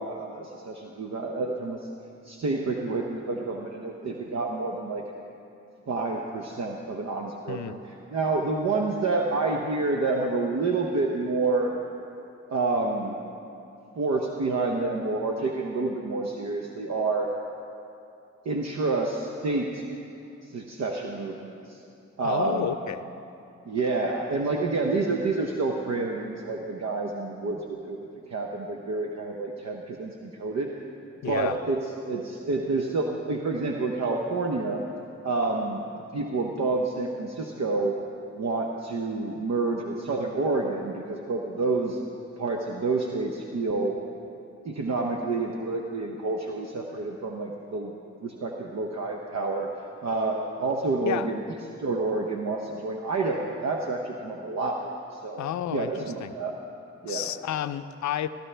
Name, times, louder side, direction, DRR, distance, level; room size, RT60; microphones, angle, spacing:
voice 1, 0.0-1.8 2.2-5.0 5.9-7.8 8.1-11.7 12.5-13.2 14.0-17.3 18.4-19.9 20.4-21.8 22.2-22.7 23.6-28.0 28.3-30.7 31.2-31.8 32.1-34.8 35.2-35.8 36.1-38.0 38.3-42.0 42.4-43.9 44.6-47.9 48.2-49.7 50.0-51.4 51.8-55.4 55.7-56.6 57.0-57.3, right 3 dB, 65° right, 1 dB, 0.9 m, -28 dB
voice 2, 22.2-23.1 31.2-31.6 51.0-51.3 55.4-56.3 57.1-58.3, left 11 dB, 75° left, 12 dB, 0.5 m, -31 dB
14.5 x 13.0 x 3.4 m, 2.7 s
cardioid pair, 50°, 29 cm